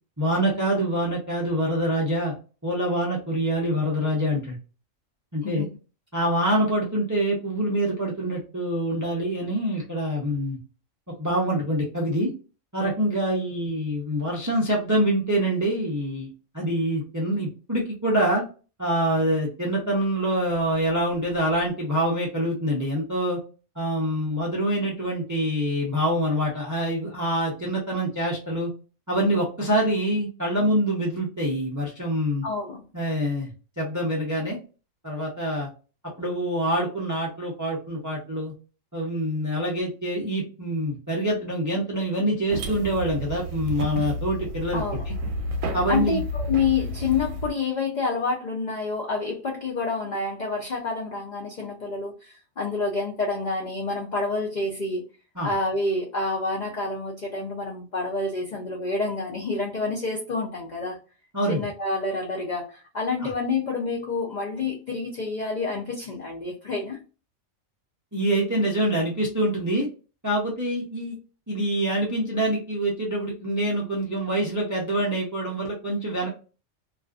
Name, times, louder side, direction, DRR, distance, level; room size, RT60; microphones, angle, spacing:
voice 1, 0.2-2.3 2.6-4.6 5.3-5.7 6.1-10.6 11.2-12.3 12.7-18.4 18.8-23.4 23.8-28.7 29.1-32.4 32.9-33.5 33.8-34.6 35.0-35.7 36.2-38.5 38.9-45.2 45.7-46.2 55.4-55.5 61.3-61.6 63.2-63.3 68.1-69.9 70.2-71.2 71.5-76.3, right 1 dB, 30° right, -2 dB, 0.3 m, -25 dB
voice 2, 32.4-32.8 44.7-45.0 45.9-55.0 55.4-61.0 61.5-67.0, left 3 dB, 65° left, -2 dB, 0.4 m, -28 dB
sound 1, 42.5-47.5, equal, 85° right, 1.0 m, -31 dB
2.4 x 2.3 x 2.3 m, 0.35 s
omnidirectional pair, 1.4 m